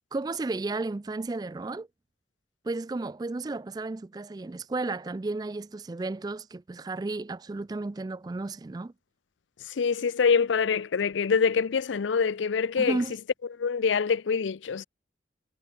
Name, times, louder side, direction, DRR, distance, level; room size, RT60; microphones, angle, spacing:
voice 1, 0.1-1.9 2.6-8.9 12.8-13.1, right 3 dB, 20° right, 0.3 m, -33 dB
voice 2, 9.7-13.0 13.6-14.8, left 5 dB, 90° left, 0.5 m, -25 dB
head